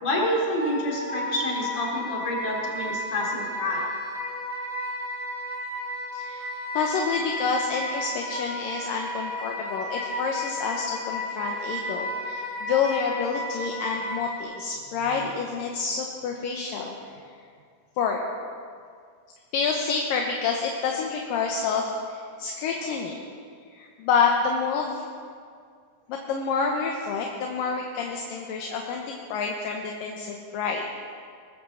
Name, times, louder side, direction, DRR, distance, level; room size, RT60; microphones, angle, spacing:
voice 1, 0.0-3.8, left 1 dB, 50° left, -2 dB, 4.1 m, -28 dB
Wind instrument woodwind instrument, 0.6-14.4, left 1 dB, 5° right, 2.0 m, -33 dB
voice 2, 6.1-17.0 18.0-18.3 19.5-23.2 23.7-25.1 26.1-30.9, left 5 dB, 75° left, 1 dB, 2.7 m, -28 dB
20.0 x 10.0 x 7.1 m, 2.2 s
omnidirectional pair, 4.1 m